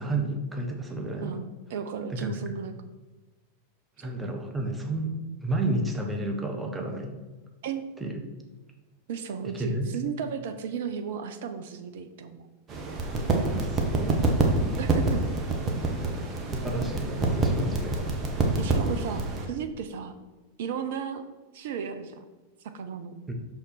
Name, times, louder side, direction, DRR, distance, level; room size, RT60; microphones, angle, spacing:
voice 1, 0.0-1.4 2.1-2.4 4.0-7.1 8.0-8.2 9.5-9.9 13.5-14.2 16.5-18.1 23.3-23.4, right 2 dB, 10° right, 2 dB, 1.2 m, -31 dB
voice 2, 1.7-2.7 4.0-4.1 7.6-7.8 9.1-12.5 14.8-15.2 18.6-20.2 20.6-21.2 21.5-22.2 22.6-23.1, right 7 dB, 55° right, 9 dB, 0.6 m, -34 dB
sound 1, 12.7-19.5, right 2 dB, 30° right, 1.4 m, -26 dB
6.5 x 5.7 x 4.5 m, 1.2 s
figure-of-eight pair, 90°, 0 cm